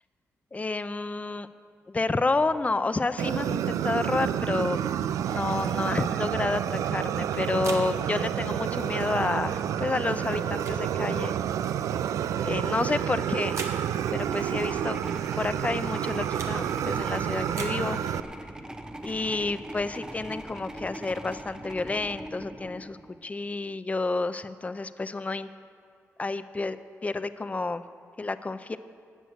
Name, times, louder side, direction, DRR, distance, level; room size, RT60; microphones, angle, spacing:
voice 1, 0.5-1.5 1.9-4.8 5.2-11.3 12.4-13.8 14.1-15.0 15.4-18.0 19.0-25.5 26.2-26.8 27.0-27.8 28.2-28.8, left 3 dB, 25° left, 12 dB, 0.6 m, -30 dB
Fire, 3.2-18.2, right 9 dB, 90° right, 0.3 m, -29 dB
sound 1, 5.5-5.7 7.0-7.8 8.9-9.1 10.2-10.8 11.6-11.8 13.0-13.8 14.6-14.8 15.7-16.5 17.4-17.8, right 4 dB, 70° right, 1.4 m, -42 dB
sound 2, 13.9-23.3, right 1 dB, 15° right, 0.8 m, -41 dB
14.5 x 6.2 x 9.3 m, 2.2 s
cardioid pair, 75°, 5 cm